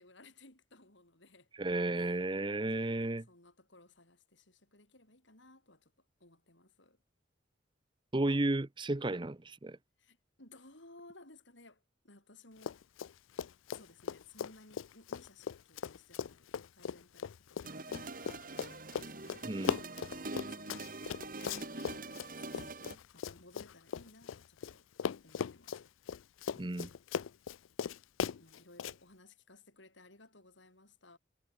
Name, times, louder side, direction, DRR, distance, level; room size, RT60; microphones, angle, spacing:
voice 1, 0.0-1.5 1.9-2.2 2.7-5.9 6.2-7.0 10.0-12.8 13.7-19.9 20.5-20.9 21.7-24.9 25.2-25.9 28.4-31.2, left 2 dB, 70° left, 7.6 m, -59 dB
voice 2, 1.6-3.2 8.1-9.8 19.4-19.8 26.6-26.9, right 2 dB, 25° right, 0.7 m, -33 dB
Run, 12.6-13.1 13.4-24.7 25.0-29.0, left 7 dB, 85° left, 0.4 m, -39 dB
sound 1, 17.6-22.9, right 2 dB, 45° right, 2.7 m, -44 dB
head